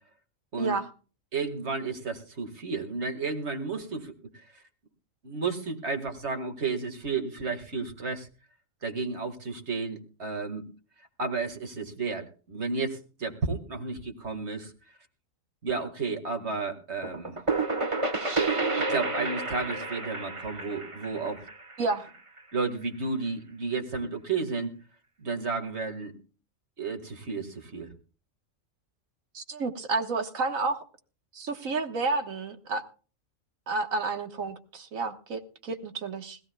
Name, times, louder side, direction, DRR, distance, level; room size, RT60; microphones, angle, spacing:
voice 1, 0.6-0.9 21.8-22.1 29.3-30.8 31.3-32.8 33.7-36.4, right 3 dB, 80° right, 6 dB, 1.7 m, -30 dB
voice 2, 1.3-4.6 5.2-8.3 8.8-10.7 11.2-15.0 15.6-17.4 18.9-21.5 22.5-24.7 25.2-26.1 26.8-27.9, right 4 dB, 55° right, 6 dB, 2.2 m, -32 dB
sound 1, 17.0-22.6, right 3 dB, 25° right, 1.2 m, -30 dB
21.0 x 15.5 x 2.3 m, 0.37 s
omnidirectional pair, 1.4 m